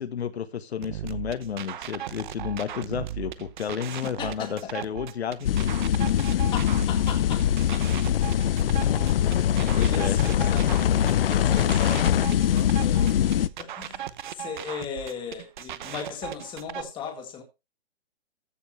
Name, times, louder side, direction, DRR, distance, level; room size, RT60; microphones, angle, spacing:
voice 1, 0.0-5.7 9.7-10.2, left 8 dB, 80° left, 1.3 m, -32 dB
sound 1, 0.8-16.8, right 11 dB, 50° right, 0.8 m, -38 dB
voice 2, 4.0-4.7 6.5-7.9 9.1-9.2 9.6-17.4, left 6 dB, 15° left, 2.0 m, -38 dB
sound 2, 5.4-13.5, left 10 dB, 60° left, 0.7 m, -22 dB
14.5 x 7.0 x 3.3 m
hypercardioid pair, 155°, 32 cm